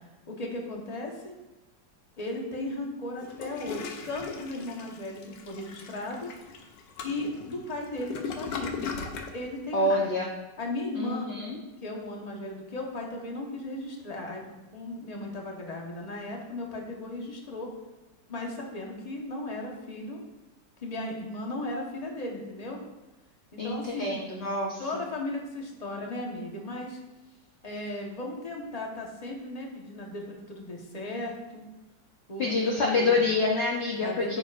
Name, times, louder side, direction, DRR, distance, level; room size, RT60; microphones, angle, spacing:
voice 1, 0.3-1.3 2.2-6.3 7.0-8.9 9.3-10.1 10.6-11.3 11.8-14.4 14.7-17.7 18.3-20.2 20.8-22.8 23.5-24.2 24.8-27.0 27.6-31.6 32.3-32.4 32.7-33.3 34.0-34.4, left 2 dB, 25° left, 0 dB, 1.0 m, -36 dB
Toilet flush, 3.2-9.4, left 5 dB, 70° left, 1.4 m, -38 dB
voice 2, 9.7-10.3 10.9-11.6 23.6-24.8 32.4-34.4, left 2 dB, 55° left, -1 dB, 0.7 m, -27 dB
9.0 x 6.9 x 2.5 m, 1.1 s
omnidirectional pair, 2.0 m